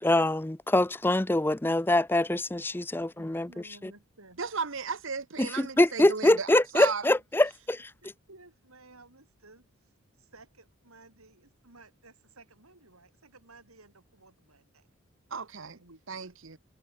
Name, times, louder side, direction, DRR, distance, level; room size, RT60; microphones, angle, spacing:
voice 1, 0.0-3.5 3.8-3.9 5.4-7.9, left 1 dB, 10° left, 0.5 m, -24 dB
voice 2, 3.2-4.4 8.0-9.9 10.2-14.9 15.8-16.3, right 2 dB, 90° right, 7.3 m, -56 dB
voice 3, 4.4-7.0 15.3-15.8 16.1-16.6, right 5 dB, 65° right, 1.1 m, -35 dB
head